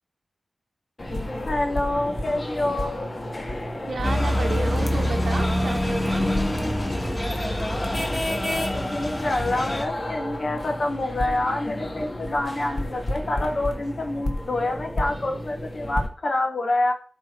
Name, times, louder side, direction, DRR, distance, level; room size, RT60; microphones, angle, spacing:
sound 1, 1.0-16.1, left 1 dB, 40° left, 2.0 m, -32 dB
voice 1, 1.5-3.0 8.7-16.9, left 2 dB, 55° left, 3 dB, 2.1 m, -27 dB
voice 2, 3.8-6.3, right 4 dB, 80° right, -1 dB, 1.1 m, -32 dB
sound 2, 4.0-9.8, left 1 dB, 20° left, 2.2 m, -25 dB
12.5 x 5.0 x 4.6 m, 0.40 s
wide cardioid pair, 85°, 0 cm